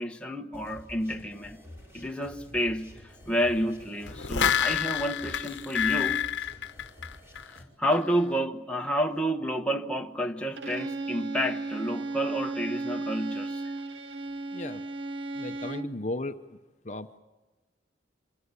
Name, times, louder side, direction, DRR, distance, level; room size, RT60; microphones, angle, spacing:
voice 1, 0.0-1.6 1.9-6.2 7.5-13.7, equal, 5° left, 1.0 m, -30 dB
sound 1, 0.5-7.6, left 1 dB, 15° right, 5.0 m, -49 dB
sound 2, 4.1-7.6 7.9-8.0, left 9 dB, 80° left, 0.9 m, -28 dB
Bowed string instrument, 10.6-16.0, right 2 dB, 80° right, 1.0 m, -35 dB
voice 2, 15.3-16.4 16.8-17.2, left 2 dB, 40° left, 0.8 m, -35 dB
25.5 x 22.5 x 8.3 m
head